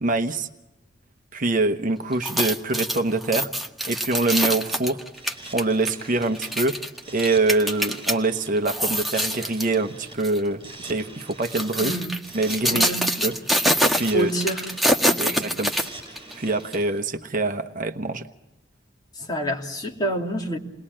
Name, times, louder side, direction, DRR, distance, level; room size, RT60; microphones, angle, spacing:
voice 1, 0.0-0.5 1.3-3.5 3.8-5.0 5.5-6.8 7.1-11.9 12.3-12.9 13.2-13.3 13.9-14.3 15.2-15.7 16.4-18.3, right 2 dB, 45° right, 8 dB, 1.0 m, -24 dB
sound 1, 2.1-8.2 8.6-9.7 10.2-10.4 11.2-16.3 16.7-16.8, equal, ahead, 1.5 m, -25 dB
sound 2, 5.1-17.0, right 2 dB, 25° right, 7.5 m, -44 dB
voice 2, 11.8-12.2 12.7-13.3 14.1-14.6 15.1-15.4 19.1-20.6, right 1 dB, 20° left, 1 dB, 3.0 m, -28 dB
29.0 x 20.5 x 8.7 m, 1.0 s
head